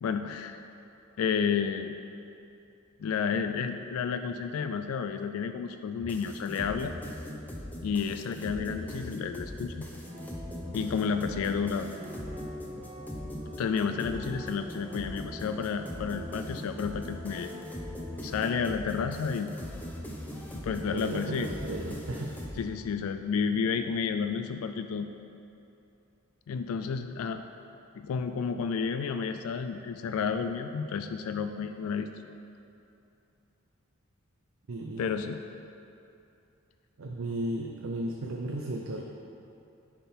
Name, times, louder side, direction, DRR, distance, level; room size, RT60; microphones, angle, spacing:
voice 1, 0.0-0.6 1.2-1.9 3.0-6.9 7.8-9.8 10.7-11.9 13.6-17.5 18.2-19.5 20.6-21.5 22.6-25.1 26.5-27.4 27.9-32.1 35.0-35.4, left 6 dB, 85° left, 8 dB, 0.3 m, -31 dB
sound 1, 6.0-22.6, equal, 10° left, 0.6 m, -41 dB
sound 2, 10.0-18.3, equal, 30° right, 1.1 m, -44 dB
voice 2, 20.9-22.3 34.7-35.2 37.0-39.0, right 1 dB, 65° right, 0 dB, 0.5 m, -34 dB
10.5 x 3.7 x 4.3 m, 2.8 s
head